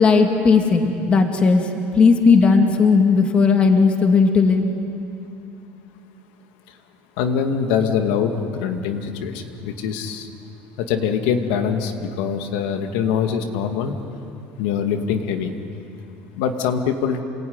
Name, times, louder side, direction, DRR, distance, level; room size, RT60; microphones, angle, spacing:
voice 1, 0.0-1.6 2.0-4.7, left 4 dB, 25° left, 4 dB, 2.0 m, -16 dB
voice 2, 7.2-10.3 10.8-14.0 14.6-15.5 16.4-17.2, left 7 dB, 85° left, 5 dB, 2.2 m, -23 dB
28.0 x 19.0 x 9.6 m, 2.8 s
cardioid pair, 160°, 5 cm